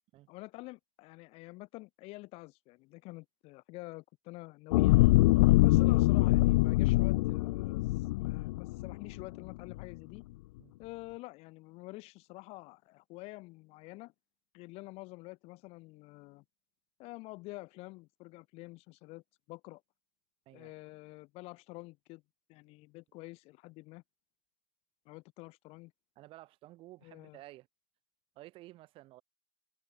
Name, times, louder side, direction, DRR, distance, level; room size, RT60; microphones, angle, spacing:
voice 1, 0.3-5.1 5.6-10.2 10.8-14.1 14.5-16.4 17.0-19.8 20.5-22.2 22.5-24.0 25.1-25.9 27.0-27.4, left 22 dB, 40° left, 2.0 m, -48 dB
sound 1, 4.7-9.2 9.7-9.8, left 19 dB, 90° left, 0.9 m, -24 dB
voice 2, 5.4-5.8 10.6-10.7 20.5-20.7 26.2-27.7 28.3-29.2, right 17 dB, 35° right, 6.4 m, -53 dB
cardioid pair, 175°, 15 cm